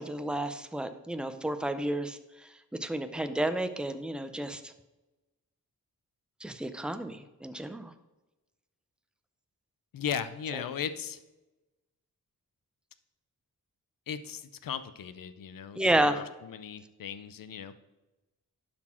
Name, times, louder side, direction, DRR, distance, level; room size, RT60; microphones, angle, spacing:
voice 1, 0.0-2.2 2.8-4.6 6.4-7.9 10.5-10.6 15.8-16.2, right 1 dB, 5° right, 9 dB, 0.6 m, -31 dB
voice 2, 9.9-11.2 14.1-17.7, left 8 dB, 65° left, 12 dB, 0.6 m, -37 dB
11.5 x 4.3 x 4.4 m, 1.1 s
wide cardioid pair, 90°, 36 cm